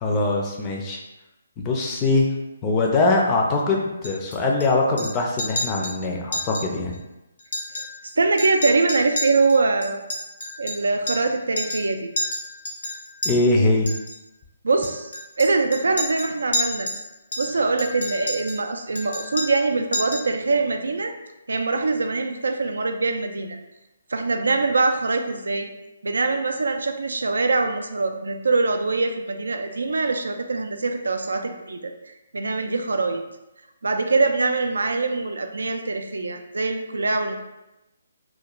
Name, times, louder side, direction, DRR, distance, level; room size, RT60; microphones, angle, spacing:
voice 1, 0.0-1.0 1.6-2.3 2.6-7.0 13.2-13.9, left 2 dB, 20° left, -1 dB, 0.4 m, -22 dB
Chink clink, 4.0-4.6 5.0-5.1 5.4-5.9 6.3-6.6 6.9-7.0 7.4-8.1 8.4-11.3 11.6-11.9 12.2-13.3 13.9-14.1 14.8-17.0 17.3-18.6 18.9-19.7 19.9-20.3, left 1 dB, 70° left, 0.7 m, -30 dB
voice 2, 8.2-10.0 10.6-12.1 14.6-15.1 15.4-16.9 17.4-21.1 21.5-23.6 24.1-25.7 26.0-31.9 32.3-33.2 33.8-37.4, right 3 dB, 85° right, 6 dB, 0.3 m, -23 dB
2.4 x 2.1 x 3.0 m, 0.97 s
hypercardioid pair, 155°, 0 cm